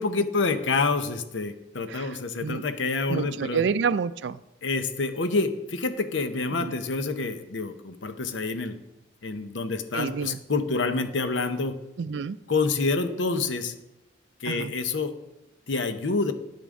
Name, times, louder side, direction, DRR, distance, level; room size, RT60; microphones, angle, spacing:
voice 1, 0.0-3.6 4.6-8.8 9.2-11.8 12.5-13.7 14.4-15.1 15.7-16.3, left 3 dB, 90° left, 9 dB, 0.8 m, -27 dB
voice 2, 1.9-2.6 3.1-4.4 6.5-6.8 9.9-10.4 12.0-12.4 14.4-14.7, right 6 dB, 75° right, 17 dB, 0.4 m, -29 dB
10.0 x 8.5 x 3.7 m, 0.90 s
head